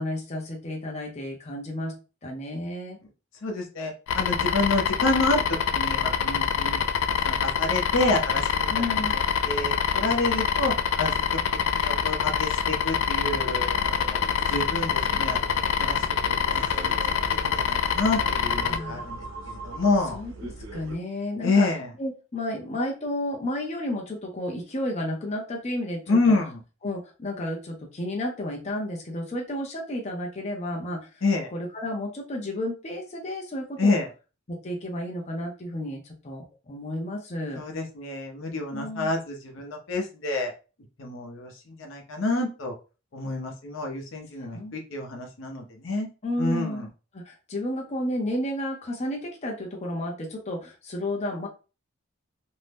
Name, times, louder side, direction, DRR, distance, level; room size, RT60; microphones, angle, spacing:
voice 1, 0.0-1.9 2.2-3.0 8.7-9.2 18.7-19.0 20.1-20.3 20.7-21.7 22.0-26.4 26.8-31.1 31.5-34.0 34.5-37.6 38.7-39.1 44.4-44.7 46.2-46.8 47.1-51.5, left 1 dB, 35° left, 0 dB, 0.6 m, -32 dB
voice 2, 3.4-6.8 7.1-9.2 9.4-10.7 11.0-11.1 11.7-14.2 14.5-15.4 15.8-19.2 19.5-20.2 21.4-21.9 26.1-26.6 31.2-31.5 33.8-34.1 37.5-40.5 41.0-42.7 43.1-46.1 46.4-46.9, left 2 dB, 70° left, 1 dB, 0.7 m, -28 dB
sound 1, 4.1-18.8, left 7 dB, 85° left, 0.3 m, -25 dB
sound 2, 13.2-21.0, right 2 dB, 80° right, 0.6 m, -40 dB
2.6 x 2.1 x 3.3 m, 0.33 s
head